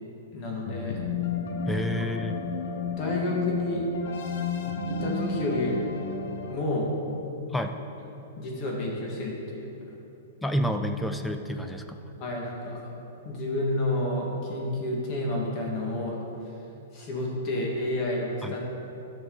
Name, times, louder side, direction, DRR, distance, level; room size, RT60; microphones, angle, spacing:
voice 1, 0.3-1.0 1.7-1.8 2.9-3.8 4.9-5.8 6.5-7.2 8.4-9.7 12.2-12.8 13.2-16.2 16.9-18.6, left 1 dB, 30° left, -2 dB, 1.9 m, -30 dB
sound 1, 0.6-6.6, left 4 dB, 65° left, 0.9 m, -32 dB
voice 2, 1.7-2.3 7.5-7.8 10.4-12.0 18.4-18.6, equal, 5° left, 6 dB, 0.4 m, -29 dB
12.5 x 6.0 x 4.0 m, 2.9 s
hypercardioid pair, 155°, 0 cm